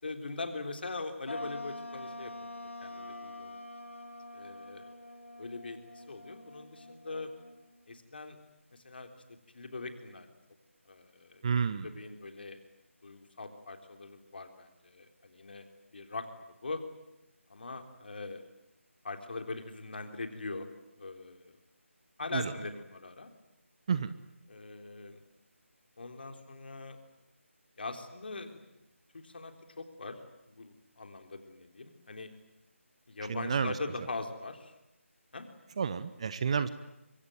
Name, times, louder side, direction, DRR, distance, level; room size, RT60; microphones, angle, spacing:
voice 1, 0.0-2.5 2.8-3.6 4.3-4.9 5.4-7.3 7.9-8.4 8.7-9.1 9.5-10.4 10.8-11.4 11.7-12.6 13.0-15.6 15.9-16.3 16.6-16.8 17.5-18.5 19.0-20.7 21.0-21.6 22.2-23.3 24.5-25.2 26.0-27.0 27.8-28.6 29.1-30.2 30.5-32.3 33.1-34.7 35.3-35.5, left 3 dB, 45° left, 6 dB, 3.5 m, -41 dB
sound 1, 1.3-7.9, left 1 dB, 65° left, 6.1 m, -45 dB
voice 2, 11.4-11.9 22.3-22.5 23.9-24.1 33.3-33.7 35.8-36.7, right 6 dB, 25° right, 14 dB, 0.9 m, -30 dB
24.5 x 24.0 x 9.2 m, 0.90 s
figure-of-eight pair, 155°, 7 cm